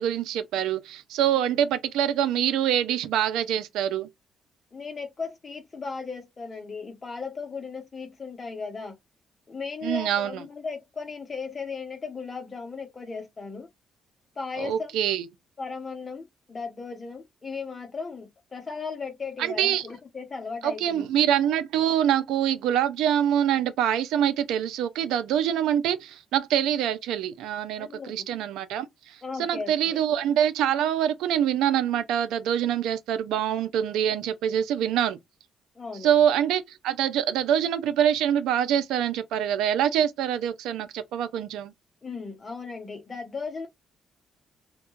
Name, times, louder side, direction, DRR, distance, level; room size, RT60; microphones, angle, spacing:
voice 1, 0.0-4.1 9.8-10.4 14.6-15.2 19.4-19.8 20.6-35.2 36.0-41.7, right 10 dB, 90° right, 0.3 m, -25 dB
voice 2, 4.7-8.9 9.5-13.7 14.4-14.9 15.6-21.0 27.8-28.1 29.2-30.0 35.8-36.1 42.0-43.7, left 4 dB, 30° left, 0.7 m, -36 dB
2.3 x 2.1 x 3.0 m
cardioid pair, 90°, 0 cm